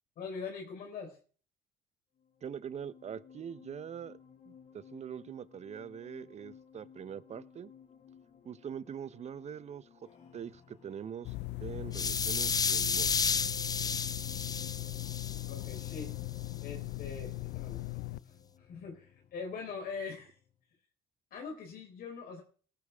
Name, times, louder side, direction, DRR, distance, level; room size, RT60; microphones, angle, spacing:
voice 1, 0.2-1.2 15.5-16.2 16.6-20.4 21.3-22.4, left 5 dB, 60° left, 4.2 m, -43 dB
sound 1, 2.2-20.6, left 7 dB, 45° left, 3.5 m, -58 dB
voice 2, 2.4-4.2 4.5-7.7 8.4-9.9 10.3-11.3 11.6-13.5, right 8 dB, 40° right, 0.9 m, -43 dB
sound 2, 11.2-18.2, left 19 dB, 80° left, 0.6 m, -39 dB
sound 3, 11.9-16.0, left 5 dB, 20° left, 0.6 m, -32 dB
19.0 x 11.5 x 3.6 m
cardioid pair, 110°, 17 cm